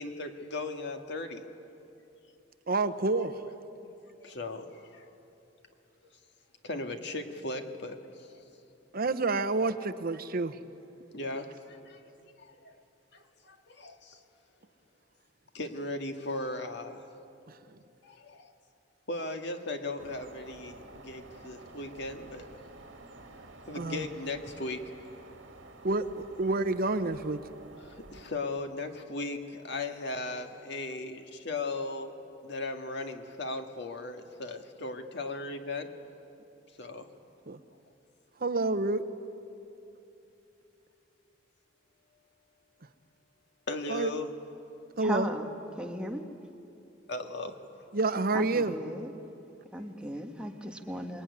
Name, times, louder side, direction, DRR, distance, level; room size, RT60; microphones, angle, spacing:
voice 1, 0.0-1.4 3.8-3.9 4.2-5.1 6.6-8.4 11.1-12.0 12.4-12.7 13.1-14.2 15.5-17.1 18.0-18.5 19.1-22.5 23.7-24.9 27.8-32.1 32.4-35.9 36.8-37.1 43.7-44.3 47.1-47.6, left 2 dB, 65° left, 5 dB, 2.0 m, -37 dB
voice 2, 2.7-3.4 8.9-10.6 17.5-17.6 23.7-24.0 25.8-27.4 37.5-37.6 38.4-39.0 43.9-44.1 45.0-45.3 47.9-48.7, right 3 dB, 55° right, 10 dB, 1.0 m, -28 dB
sound 1, 20.0-28.2, right 2 dB, 75° right, 2.3 m, -51 dB
voice 3, 45.0-45.5 45.8-46.3 48.3-49.1 49.7-51.2, right 1 dB, 5° right, 3 dB, 1.5 m, -36 dB
26.5 x 21.5 x 9.8 m, 2.9 s
head